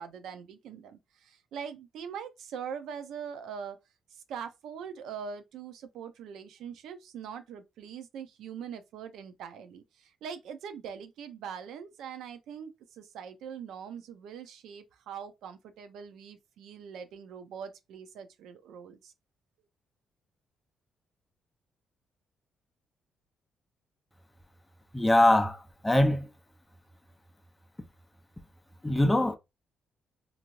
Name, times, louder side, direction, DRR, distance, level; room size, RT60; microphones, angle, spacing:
voice 1, 0.0-3.8 4.3-19.1, right 7 dB, 80° right, 0.5 m, -42 dB
voice 2, 24.9-26.3 28.8-29.4, left 1 dB, 10° left, 0.6 m, -23 dB
3.0 x 2.5 x 2.5 m
cardioid pair, 90°, 0 cm